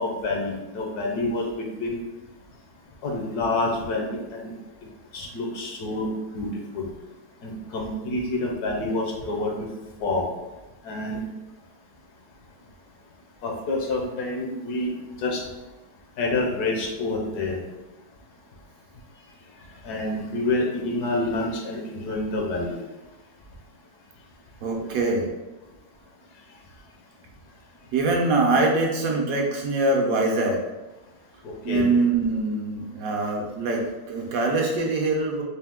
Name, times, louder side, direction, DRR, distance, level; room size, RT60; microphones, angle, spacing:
voice 1, 0.0-2.0 3.0-4.5 5.1-6.1 6.3-6.9 7.4-9.7 10.0-10.3 10.8-11.2 13.4-14.9 15.2-15.4 16.2-17.6 19.8-22.8 24.8-24.9 31.4-31.9, left 2 dB, 75° left, 0 dB, 1.3 m, -27 dB
voice 2, 24.6-25.3 27.9-30.6 31.6-35.4, right 3 dB, 65° right, 0 dB, 1.0 m, -23 dB
4.1 x 2.6 x 3.5 m, 1.1 s
omnidirectional pair, 1.7 m